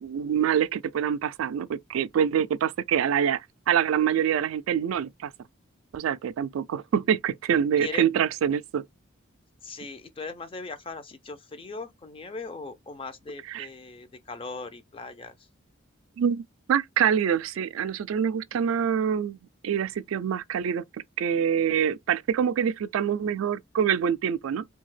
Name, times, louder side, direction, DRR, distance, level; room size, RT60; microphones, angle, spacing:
voice 1, 0.0-3.4 3.7-5.3 5.9-8.8 13.5-13.7 16.2-19.4 19.6-20.8 21.2-24.6, right 8 dB, 80° right, 0.3 m, -25 dB
voice 2, 9.6-15.3, left 3 dB, 25° left, 0.4 m, -39 dB
2.7 x 2.3 x 3.1 m
head